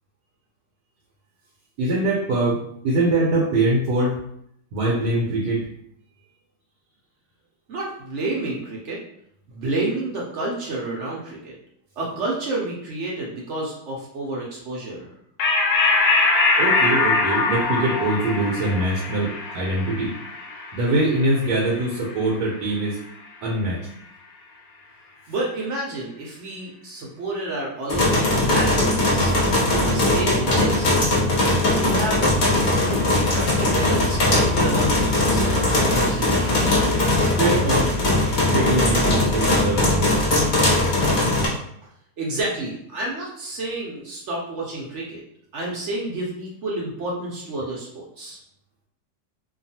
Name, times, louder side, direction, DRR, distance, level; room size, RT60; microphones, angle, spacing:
voice 1, 1.8-4.2 4.7-5.7 16.6-20.1 20.7-23.0 23.4-23.8 37.4-37.9 38.5-40.1, right 2 dB, 80° right, -2 dB, 1.2 m, -23 dB
voice 2, 7.7-9.0 9.5-11.5 12.0-15.1 25.3-29.3 29.7-31.1 31.6-32.3 32.8-36.4 42.2-45.2 45.5-48.4, right 2 dB, 65° right, -3 dB, 0.7 m, -30 dB
sound 1, 15.4-22.3, left 3 dB, 70° left, 1.0 m, -22 dB
sound 2, 27.9-41.5, left 1 dB, 85° left, 0.4 m, -20 dB
2.8 x 2.3 x 2.7 m, 0.71 s
omnidirectional pair, 1.8 m